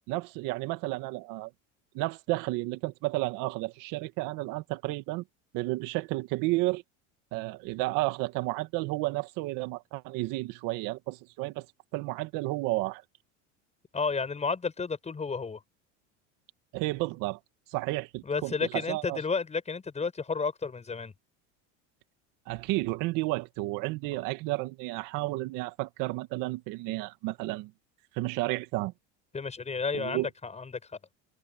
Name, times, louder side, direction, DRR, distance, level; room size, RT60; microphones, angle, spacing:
voice 1, 0.1-1.5 1.9-5.2 5.5-6.8 7.3-11.7 11.9-13.0 16.7-17.4 17.7-19.2 22.5-27.7 28.1-28.9 29.9-30.3, right 20 dB, 65° right, 2.0 m, -32 dB
voice 2, 13.9-15.6 18.2-21.1 29.3-30.9, left 4 dB, 20° left, 5.6 m, -32 dB
supercardioid pair, 120°, 35 cm